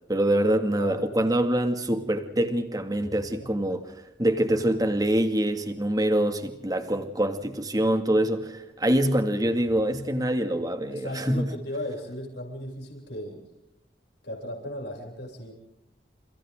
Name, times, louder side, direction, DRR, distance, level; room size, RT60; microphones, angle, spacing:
voice 1, 0.1-3.8 4.2-11.5, right 1 dB, 20° right, 2.2 m, -25 dB
voice 2, 3.4-3.8 10.9-13.4 14.2-15.5, left 1 dB, 70° left, 7.5 m, -36 dB
29.5 x 29.5 x 3.8 m
head